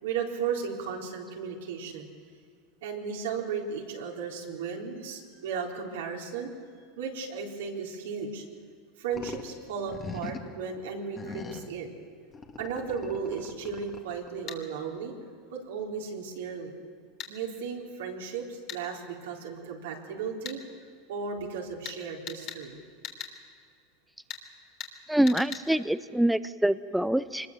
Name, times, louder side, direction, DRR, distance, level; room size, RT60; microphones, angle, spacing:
voice 1, 0.0-2.1 2.8-6.5 7.0-8.4 9.0-11.9 12.6-15.1 15.5-16.7 17.3-20.6 21.1-22.8, right 6 dB, 85° right, -1 dB, 3.9 m, -35 dB
sound 1, 9.1-9.5 9.9-10.6 11.2-11.8 12.3-14.4, left 4 dB, 25° left, 2.1 m, -41 dB
sound 2, 14.5-14.6 17.2-17.3 18.7-18.8 20.5-20.6 21.9-22.0 22.3-22.6 23.0-23.3 24.3-24.4 24.8-24.9 25.3-25.7, left 9 dB, 50° left, 3.4 m, -39 dB
voice 2, 25.1-27.5, right 1 dB, 5° right, 13 dB, 0.6 m, -25 dB
24.5 x 21.0 x 7.5 m, 2.1 s
supercardioid pair, 110°, 0 cm